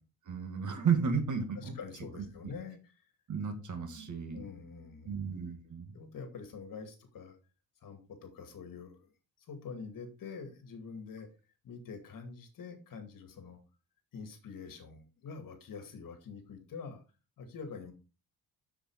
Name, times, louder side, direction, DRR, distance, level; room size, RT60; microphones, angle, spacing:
voice 1, 0.3-1.7 2.2-2.3 3.3-4.4 5.0-5.9, right 6 dB, 50° right, 5 dB, 2.3 m, -33 dB
voice 2, 1.6-3.0 4.3-5.1 5.9-7.4 7.8-9.1 9.4-11.3 11.6-13.6 14.1-17.0 17.4-17.9, left 5 dB, 60° left, 6 dB, 2.3 m, -46 dB
7.5 x 6.9 x 4.8 m, 0.32 s
cardioid pair, 150°, 37 cm